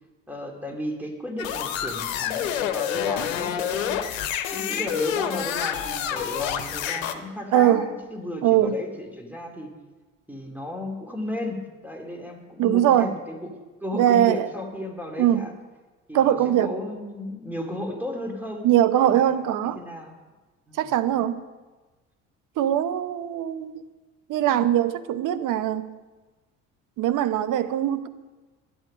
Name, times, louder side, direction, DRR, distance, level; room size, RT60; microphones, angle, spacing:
voice 1, 0.3-4.0 4.5-9.7 10.3-15.6 16.1-19.3 19.7-20.1 20.7-20.9 24.5-24.6, left 1 dB, 5° right, 2.6 m, -34 dB
sound 1, 1.4-7.1, left 9 dB, 70° left, 1.0 m, -28 dB
voice 2, 7.5-7.9 8.4-8.8 12.6-13.1 13.9-14.5 15.2-15.4 16.1-16.7 18.6-19.8 20.8-21.4 22.6-23.8 24.3-26.0 27.0-28.1, right 11 dB, 50° right, 1.0 m, -21 dB
13.0 x 10.5 x 5.3 m
figure-of-eight pair, 55°, 40 cm